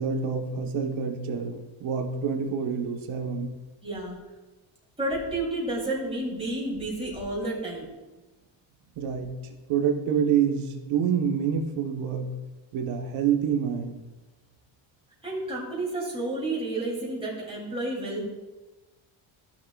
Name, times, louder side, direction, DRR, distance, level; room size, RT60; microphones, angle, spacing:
voice 1, 0.0-3.6 9.0-9.3 9.7-12.3 12.7-14.0, right 7 dB, 75° right, 3 dB, 1.3 m, -27 dB
voice 2, 3.8-4.2 5.0-7.9 15.2-18.3, right 2 dB, 10° right, -5 dB, 3.2 m, -31 dB
15.0 x 6.4 x 2.4 m, 1.1 s
cardioid pair, 120°, 48 cm